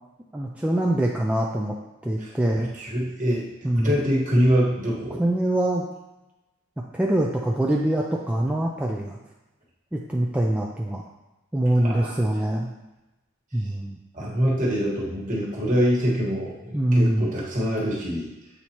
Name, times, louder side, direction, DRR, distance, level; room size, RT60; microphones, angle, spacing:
voice 1, 0.3-1.7 2.0-2.7 3.6-3.9 5.2-5.9 6.9-9.2 9.9-11.0 11.5-12.7 13.5-14.0 16.7-17.3, right 1 dB, 5° right, -2 dB, 0.4 m, -24 dB
voice 2, 2.5-5.2 11.8-12.2 14.1-18.3, equal, 40° right, -4 dB, 1.5 m, -25 dB
8.0 x 4.2 x 3.0 m, 1.0 s
head